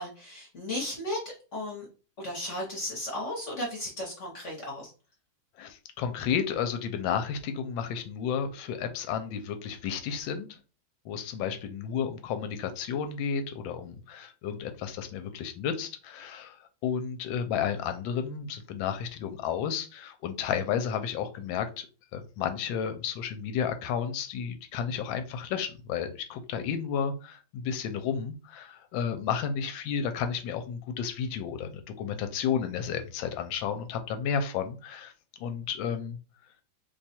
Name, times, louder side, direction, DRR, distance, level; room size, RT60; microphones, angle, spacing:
voice 1, 0.0-1.8 2.2-4.9, left 1 dB, 45° left, -3 dB, 1.1 m, -35 dB
voice 2, 5.6-10.6 11.1-16.6 16.8-21.9 22.1-35.1 35.4-36.2, left 7 dB, 80° left, 8 dB, 1.3 m, -32 dB
3.1 x 2.3 x 4.1 m, 0.35 s
omnidirectional pair, 2.2 m